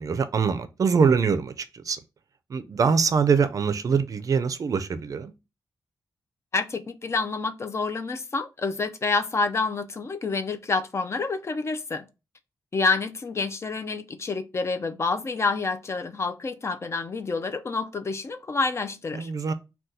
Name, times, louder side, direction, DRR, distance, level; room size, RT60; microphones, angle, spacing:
voice 1, 0.0-2.0 2.5-5.3 19.1-19.5, right 5 dB, 55° right, 0.4 m, -23 dB
voice 2, 6.5-12.1 12.7-19.5, left 4 dB, 40° left, 0.4 m, -28 dB
2.7 x 2.2 x 3.6 m
cardioid pair, 70°, 7 cm